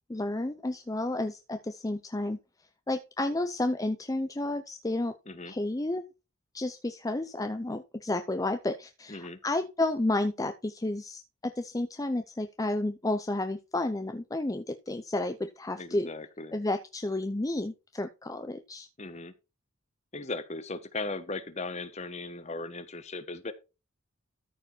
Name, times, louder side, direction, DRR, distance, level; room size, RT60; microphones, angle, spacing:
voice 1, 0.1-2.4 2.9-5.1 5.5-6.0 6.5-16.1 16.5-18.9, left 2 dB, 15° left, 0.5 m, -31 dB
voice 2, 9.1-9.4 15.8-16.6 19.0-19.3 20.1-23.5, left 3 dB, 30° left, 1.0 m, -37 dB
13.5 x 4.7 x 4.4 m
head